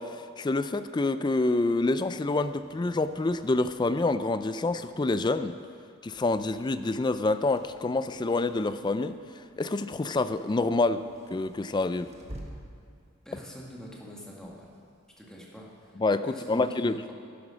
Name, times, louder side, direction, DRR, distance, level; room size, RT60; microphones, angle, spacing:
voice 1, 0.0-5.6 6.0-11.0 11.3-12.1 16.0-17.1, left 2 dB, 20° left, 12 dB, 0.3 m, -27 dB
sound 1, 2.0-15.9, right 1 dB, 30° right, 1.4 m, -53 dB
voice 2, 13.3-14.7 15.2-17.1, equal, 5° left, -4 dB, 1.8 m, -45 dB
11.0 x 10.5 x 6.2 m, 2.3 s
head